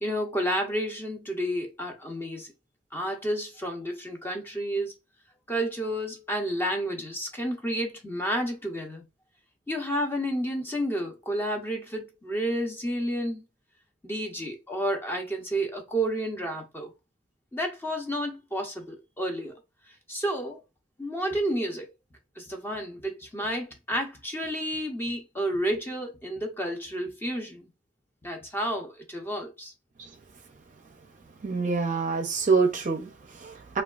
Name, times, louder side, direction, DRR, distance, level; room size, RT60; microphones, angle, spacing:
voice 1, 0.0-2.5 2.9-4.9 5.5-9.0 9.7-13.4 14.0-16.9 17.5-19.6 20.1-20.6 21.0-21.9 22.4-27.7 28.2-29.7, equal, 10° left, 0.6 m, -31 dB
voice 2, 31.4-33.8, right 4 dB, 45° right, 0.5 m, -26 dB
3.3 x 2.3 x 2.3 m
head